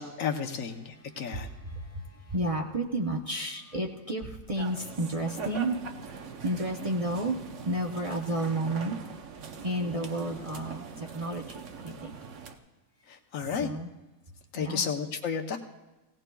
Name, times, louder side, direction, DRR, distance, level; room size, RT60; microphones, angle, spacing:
voice 1, 0.0-1.5 13.1-13.7 14.5-15.6, left 6 dB, 75° left, 4 dB, 1.3 m, -32 dB
voice 2, 0.9-7.4 7.7-9.0 9.6-12.2 13.4-13.9 14.5-14.9, right 1 dB, 35° right, 0 dB, 0.6 m, -32 dB
sound 1, 4.5-12.5, right 6 dB, 65° right, 1.1 m, -42 dB
18.0 x 18.0 x 2.3 m, 1.1 s
omnidirectional pair, 1.4 m